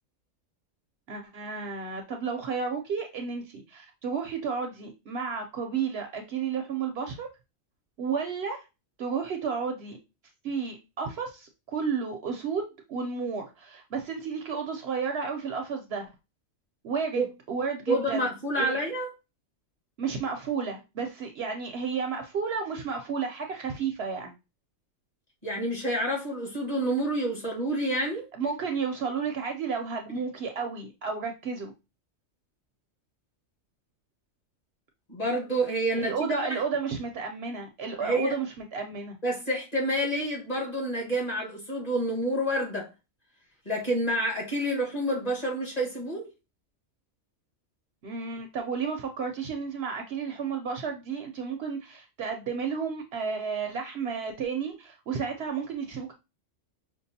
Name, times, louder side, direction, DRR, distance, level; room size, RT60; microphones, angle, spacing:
voice 1, 1.1-7.3 8.0-8.6 9.0-10.0 10.4-12.6 12.9-16.1 16.8-18.3 18.6-18.8 20.0-24.3 28.4-31.7 35.9-39.2 48.0-56.1, right 5 dB, 65° right, 0.7 m, -32 dB
voice 2, 17.9-19.1 25.4-28.3 35.1-36.6 38.0-38.3 39.2-42.9 43.6-46.3, right 1 dB, 30° left, 1.5 m, -28 dB
5.3 x 2.3 x 2.7 m
omnidirectional pair, 1.3 m